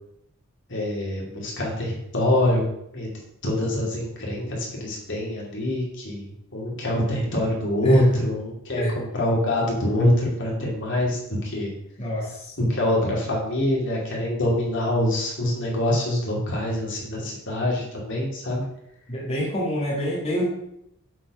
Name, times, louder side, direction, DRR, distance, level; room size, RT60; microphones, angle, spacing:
voice 1, 0.7-2.6 2.9-3.1 3.4-11.7 12.6-18.7, left 1 dB, 60° left, -3 dB, 2.5 m, -25 dB
voice 2, 12.0-12.5 19.1-20.5, equal, 30° left, -5 dB, 1.9 m, -27 dB
7.4 x 4.5 x 6.0 m, 0.80 s
head